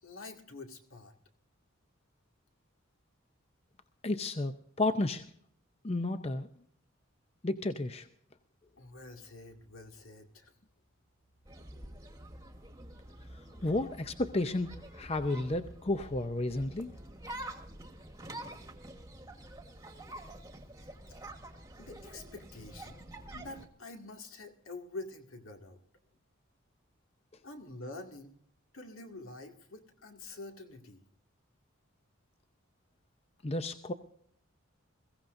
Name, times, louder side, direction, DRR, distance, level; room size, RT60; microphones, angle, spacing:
voice 1, 0.0-1.1 8.8-10.5 13.6-13.7 21.8-23.1 23.3-25.8 27.4-28.3 28.7-31.0, left 2 dB, 80° left, 3 dB, 2.2 m, -47 dB
voice 2, 4.0-5.2 5.8-6.5 7.4-8.1 13.6-16.9 33.4-33.9, left 2 dB, 30° left, 9 dB, 0.6 m, -32 dB
sound 1, 11.4-23.7, right 1 dB, 15° right, 1.3 m, -47 dB
22.0 x 16.0 x 2.6 m, 0.65 s
head